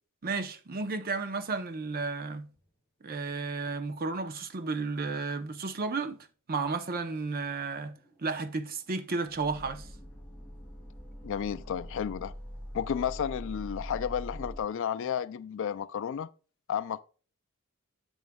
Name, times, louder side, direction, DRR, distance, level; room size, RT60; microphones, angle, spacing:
voice 1, 0.2-2.5 3.0-6.2 6.5-9.9, right 4 dB, 45° right, 0.7 m, -33 dB
sound 1, 5.4-5.5 7.2-7.3 7.7-14.6, equal, 10° left, 4.0 m, -43 dB
voice 2, 11.2-12.3 12.7-16.3 16.7-17.0, left 8 dB, 60° left, 0.3 m, -32 dB
9.5 x 7.1 x 2.2 m
head